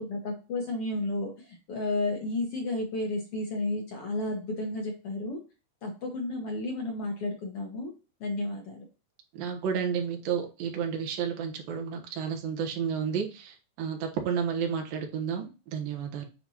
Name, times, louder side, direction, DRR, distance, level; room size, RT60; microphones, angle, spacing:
voice 1, 0.0-5.4 5.8-7.9 8.2-8.9, left 2 dB, 55° left, 0 dB, 1.7 m, -32 dB
voice 2, 9.4-16.3, right 7 dB, 80° right, 2 dB, 3.0 m, -31 dB
9.3 x 4.3 x 2.9 m, 0.32 s
omnidirectional pair, 4.0 m